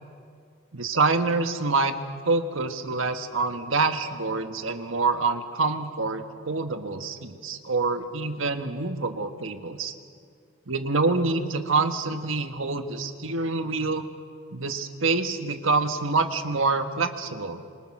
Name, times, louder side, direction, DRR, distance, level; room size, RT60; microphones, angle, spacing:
voice 1, 0.7-1.9 2.2-9.9 10.7-14.0 14.5-17.6, right 3 dB, 70° right, 7 dB, 1.5 m, -26 dB
27.0 x 24.5 x 6.1 m, 2.2 s
head